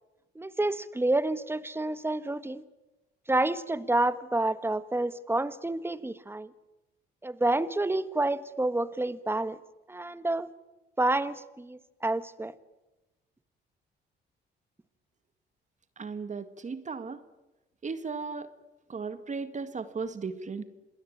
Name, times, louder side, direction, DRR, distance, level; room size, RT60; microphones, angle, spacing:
voice 1, 0.3-2.6 3.3-6.5 7.2-9.6 9.9-10.5 11.0-12.5, right 2 dB, 10° right, 14 dB, 1.5 m, -29 dB
voice 2, 16.0-17.2 17.8-18.5 18.9-20.6, right 4 dB, 35° right, 11 dB, 2.0 m, -36 dB
27.5 x 20.5 x 8.8 m, 1.0 s
cardioid pair, 90°, 20 cm